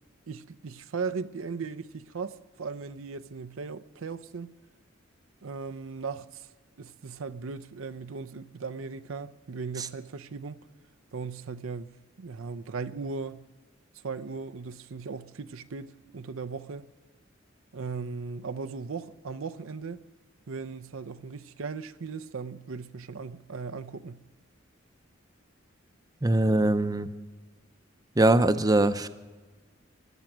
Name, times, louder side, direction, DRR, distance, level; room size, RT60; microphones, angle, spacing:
voice 1, 0.3-4.5 5.4-6.5 6.8-10.6 11.1-11.9 12.2-13.4 14.0-16.9 17.7-20.0 20.5-24.2, right 4 dB, 90° right, 0.6 m, -37 dB
voice 2, 26.2-27.1 28.2-29.1, right 2 dB, 20° right, 0.6 m, -22 dB
16.5 x 11.5 x 6.1 m
head